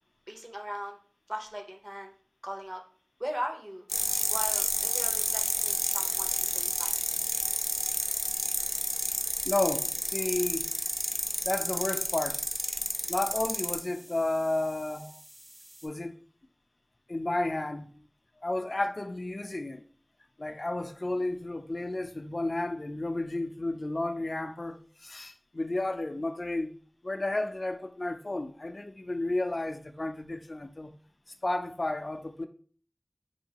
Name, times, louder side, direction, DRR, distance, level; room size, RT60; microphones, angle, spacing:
voice 1, 0.3-1.0 1.3-2.1 2.4-2.8 3.2-3.9 4.3-6.9 14.6-15.1, equal, 25° right, 0.7 m, -39 dB
sound 1, 3.9-13.8, equal, 10° left, 0.4 m, -30 dB
sound 2, 4.4-15.9, right 1 dB, 65° right, 1.4 m, -52 dB
voice 2, 9.5-10.7 11.4-12.4 13.1-15.1 15.8-16.1 17.1-17.9 18.4-19.8 20.4-26.7 27.0-30.9 31.4-32.5, left 2 dB, 75° left, 0.4 m, -32 dB
4.5 x 2.7 x 2.9 m
wide cardioid pair, 45°, 0 cm